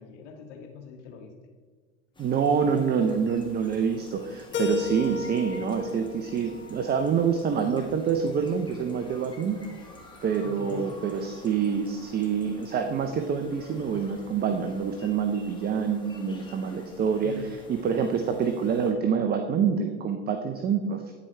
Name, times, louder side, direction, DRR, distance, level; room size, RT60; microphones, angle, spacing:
voice 1, 0.0-1.3 10.4-10.9 17.2-17.5, left 5 dB, 75° left, 3 dB, 1.5 m, -43 dB
sound 1, 2.1-18.9, left 2 dB, 15° left, 1.6 m, -50 dB
voice 2, 2.2-9.6 10.2-17.3 17.7-21.0, right 6 dB, 30° right, 6 dB, 0.6 m, -26 dB
Keyboard (musical), 4.5-7.4, left 4 dB, 30° left, 1.5 m, -34 dB
9.9 x 4.6 x 4.3 m, 1.5 s
hypercardioid pair, 105°, 35 cm